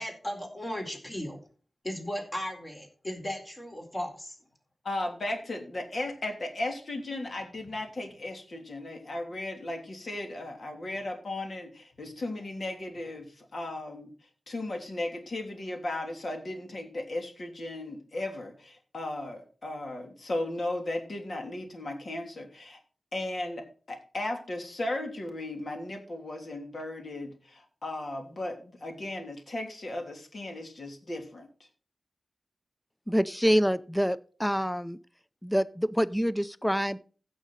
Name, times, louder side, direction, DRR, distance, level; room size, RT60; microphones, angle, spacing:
voice 1, 0.0-1.4 1.8-4.4, equal, 25° left, 2 dB, 4.3 m, -36 dB
voice 2, 4.8-14.1 14.5-22.8 23.1-31.7, left 2 dB, 55° left, 3 dB, 3.2 m, -36 dB
voice 3, 33.1-35.0 35.4-37.0, equal, 5° left, 16 dB, 0.5 m, -26 dB
16.0 x 6.3 x 4.1 m, 0.39 s
wide cardioid pair, 90°, 0 cm